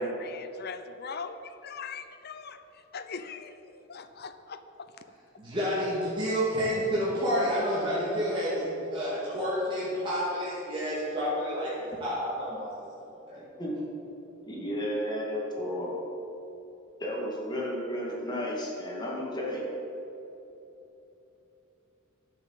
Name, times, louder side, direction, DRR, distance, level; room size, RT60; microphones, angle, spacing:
voice 1, 0.0-2.6 2.9-4.9, left 5 dB, 50° left, 9 dB, 0.6 m, -41 dB
voice 2, 5.4-12.7 13.0-13.4, equal, 25° right, -8 dB, 2.3 m, -29 dB
voice 3, 13.3-13.9 14.4-16.0 17.0-19.7, equal, 20° left, -3 dB, 2.1 m, -33 dB
11.0 x 7.3 x 7.4 m, 3.0 s
head